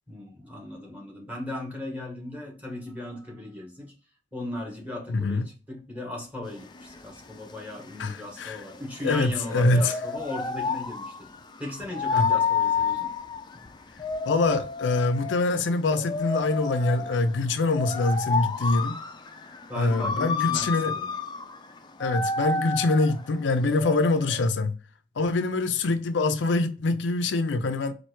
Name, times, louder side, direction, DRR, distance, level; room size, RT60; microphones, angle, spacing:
voice 1, 0.1-3.9 4.3-11.3 11.6-13.1 19.7-21.1, left 1 dB, 10° right, 1.5 m, -37 dB
voice 2, 5.1-5.4 8.0-8.6 9.0-9.9 12.2-12.3 14.3-19.0 19.7-20.9 22.0-24.8 25.2-27.9, left 2 dB, 80° left, 0.5 m, -24 dB
sound 1, 6.5-24.5, left 5 dB, 25° left, 0.4 m, -31 dB
4.4 x 2.6 x 4.4 m
head